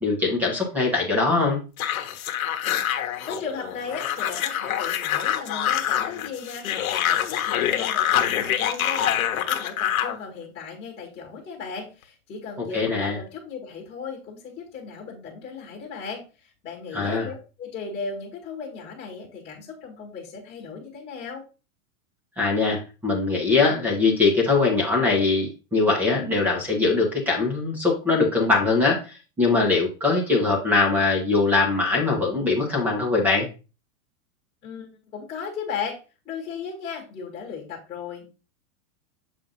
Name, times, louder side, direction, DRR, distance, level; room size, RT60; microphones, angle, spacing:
voice 1, 0.0-1.6 12.7-13.1 16.9-17.3 22.4-33.5, left 3 dB, 5° right, 1 dB, 0.7 m, -22 dB
sound 1, 1.8-10.2, left 10 dB, 80° left, 1.0 m, -25 dB
voice 2, 3.2-21.4 34.6-36.0 36.2-38.2, left 5 dB, 15° left, -3 dB, 1.4 m, -36 dB
7.3 x 2.5 x 5.2 m, 0.32 s
supercardioid pair, 180°, 42 cm